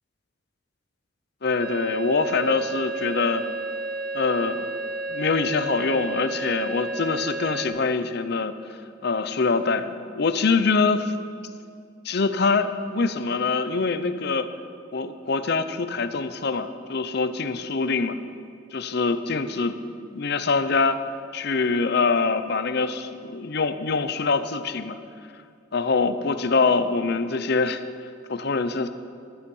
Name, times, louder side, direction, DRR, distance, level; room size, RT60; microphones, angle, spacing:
voice 1, 1.4-3.4 4.1-4.6 5.1-8.5 9.0-11.1 12.0-14.5 14.9-18.2 18.7-19.8 20.1-21.0 21.3-25.0 25.7-27.8 28.3-28.9, left 4 dB, 55° left, 11 dB, 0.7 m, -24 dB
sound 1, 1.6-7.7, right 2 dB, 50° right, 1.1 m, -31 dB
13.5 x 11.0 x 5.5 m, 2.3 s
head